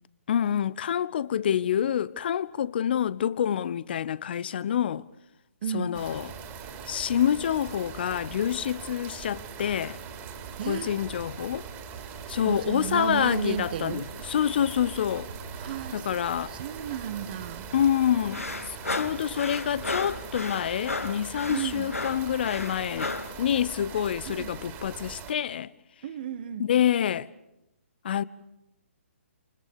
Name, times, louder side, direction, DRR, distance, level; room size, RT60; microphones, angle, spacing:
voice 1, 0.3-5.1 5.7-6.3 6.9-10.0 10.7-11.7 12.3-15.3 15.9-16.5 17.7-18.5 18.9-23.1 23.4-25.7 26.6-27.3 28.0-28.2, left 9 dB, 45° left, 1.0 m, -27 dB
voice 2, 5.6-6.0 10.6-10.9 12.5-14.1 15.6-16.1 16.5-17.7 21.5-21.9 24.3-24.5 26.0-26.7, right 9 dB, 40° right, 1.8 m, -33 dB
sound 1, 5.9-25.3, right 6 dB, 20° right, 3.3 m, -41 dB
sound 2, 9.9-16.0, right 3 dB, 80° right, 3.3 m, -47 dB
sound 3, 18.3-23.4, left 3 dB, 85° left, 2.7 m, -34 dB
29.5 x 28.5 x 6.8 m
figure-of-eight pair, 135°, 7 cm